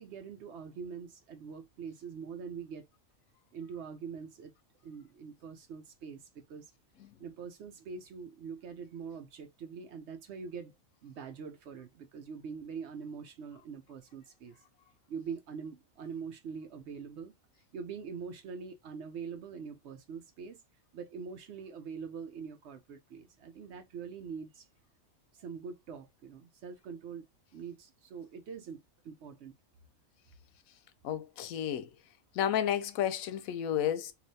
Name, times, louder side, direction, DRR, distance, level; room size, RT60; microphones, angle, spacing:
voice 1, 0.0-2.9 3.5-4.5 4.8-6.7 7.2-10.7 11.0-14.6 15.1-17.3 17.7-20.6 20.9-24.7 25.3-27.3 27.5-29.5, right 6 dB, 65° right, 0.7 m, -44 dB
voice 2, 31.0-31.9 32.3-34.1, left 10 dB, 85° left, 1.0 m, -31 dB
3.2 x 2.5 x 2.6 m
omnidirectional pair, 1.4 m